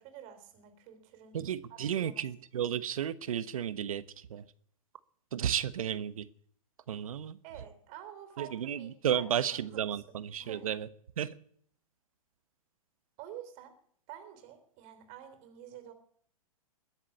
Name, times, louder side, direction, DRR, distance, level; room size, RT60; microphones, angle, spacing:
voice 1, 0.0-1.4 1.7-2.2 7.4-10.0 10.4-10.7 13.2-13.8 14.1-15.9, right 10 dB, 40° right, 9 dB, 3.4 m, -49 dB
voice 2, 1.3-4.0 4.3-4.4 5.3-6.3 6.9-7.4 8.4-10.9 11.2-11.3, right 9 dB, 70° right, 15 dB, 1.1 m, -33 dB
21.0 x 7.4 x 8.5 m, 0.62 s
hypercardioid pair, 120°, 18 cm